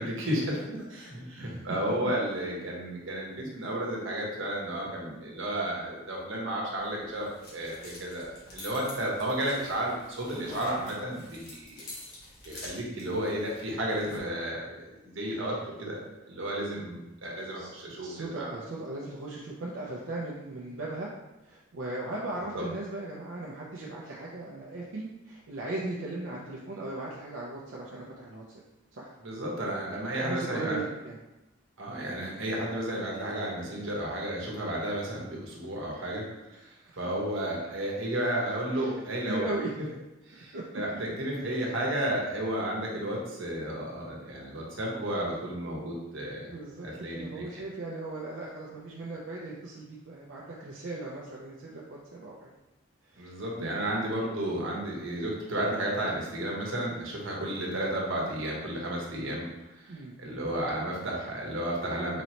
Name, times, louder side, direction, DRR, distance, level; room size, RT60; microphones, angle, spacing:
voice 1, 0.0-11.8 12.4-18.5 22.5-22.6 29.2-30.8 31.8-36.2 37.0-39.4 40.3-40.9 41.2-46.5 46.8-47.4 53.2-59.4 59.8-62.2, right 1 dB, 90° right, -2 dB, 1.0 m, -32 dB
voice 2, 1.4-1.8 2.0-2.1 15.3-16.0 17.5-21.1 21.4-28.4 28.9-29.1 30.1-31.2 36.5-37.0 38.7-39.0 39.3-39.7 40.5-40.6 41.3-41.6 46.5-52.5 53.1-53.8 59.9-60.2, right 2 dB, 70° right, -4 dB, 0.5 m, -38 dB
sound 1, 6.7-14.2, left 1 dB, 50° left, 1.2 m, -47 dB
4.0 x 3.1 x 2.9 m, 0.99 s
head